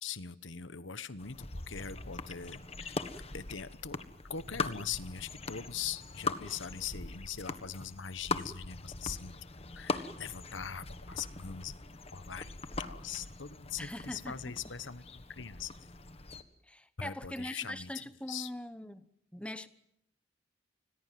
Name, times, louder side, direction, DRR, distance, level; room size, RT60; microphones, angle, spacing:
voice 1, 0.0-3.1 3.3-9.3 9.7-11.8 12.1-15.9 17.0-18.5, left 7 dB, 80° left, 1.2 m, -42 dB
sound 1, 1.2-16.4, left 3 dB, 30° left, 1.5 m, -41 dB
voice 2, 13.8-14.5 16.6-19.1 19.3-19.7, left 1 dB, 5° left, 1.1 m, -42 dB
29.0 x 21.5 x 7.7 m
head